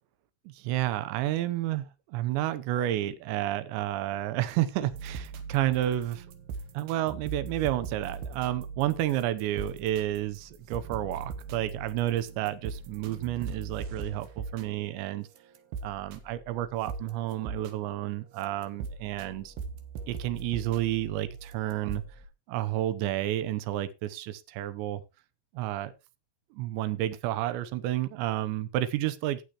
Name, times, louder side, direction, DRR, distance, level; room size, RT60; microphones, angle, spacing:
voice 1, 0.5-6.3 6.7-15.3 15.8-19.5 20.1-22.0 22.5-25.0 25.5-25.9 26.6-29.4, right 13 dB, 90° right, 3.1 m, -30 dB
sound 1, 4.9-14.8 15.3-17.9 18.4-22.3, right 5 dB, 70° right, 3.0 m, -40 dB
18.0 x 6.6 x 3.0 m
omnidirectional pair, 5.2 m